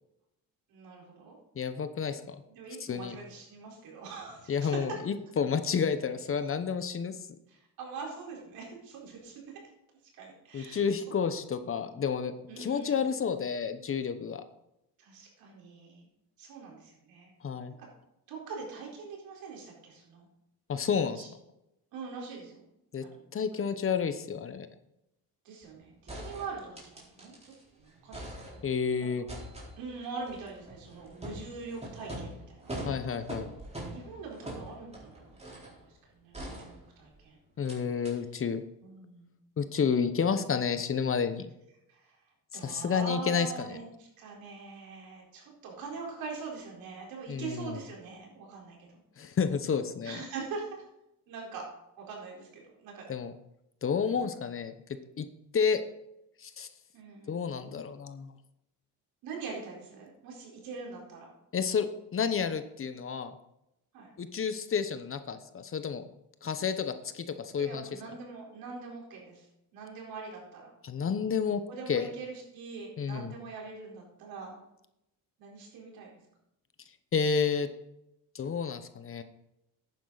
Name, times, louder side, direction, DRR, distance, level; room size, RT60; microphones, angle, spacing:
voice 1, 0.7-1.4 2.5-4.7 7.5-9.3 10.2-10.9 12.5-13.0 15.0-16.1 16.4-17.3 18.3-20.3 21.0-21.3 21.9-22.6 23.0-23.2 25.4-28.7 29.0-29.1 29.8-32.7 33.9-37.4 38.8-39.3 41.9-42.1 42.5-49.0 50.0-50.8 51.3-51.6 52.0-53.1 54.0-54.3 56.9-57.4 59.2-61.3 63.9-64.1 67.6-69.5 69.7-70.7 71.7-74.6 75.4-76.2, right 4 dB, 80° right, -1 dB, 4.4 m, -43 dB
voice 2, 1.6-2.4 2.8-3.2 4.5-7.2 10.5-14.4 17.4-17.7 20.7-21.2 22.9-23.0 23.3-24.7 28.6-29.3 32.8-33.5 37.6-38.6 39.6-41.5 42.6-43.8 47.3-47.8 49.2-50.2 53.1-53.3 53.8-54.7 55.2-55.3 55.5-55.8 56.4-56.7 57.3-58.3 61.5-61.9 62.1-63.3 64.2-66.0 66.4-67.9 70.8-71.6 71.9-72.1 73.0-73.3 77.1-77.7 78.3-79.2, left 6 dB, 35° left, 10 dB, 1.0 m, -30 dB
sound 1, 25.6-25.7 26.1-27.6 27.9-28.9 29.3-35.8 36.3-37.2 37.7-37.8 38.0-38.1, right 1 dB, 20° right, 3.9 m, -43 dB
11.5 x 9.3 x 4.1 m, 0.84 s
cardioid pair, 100°, 35 cm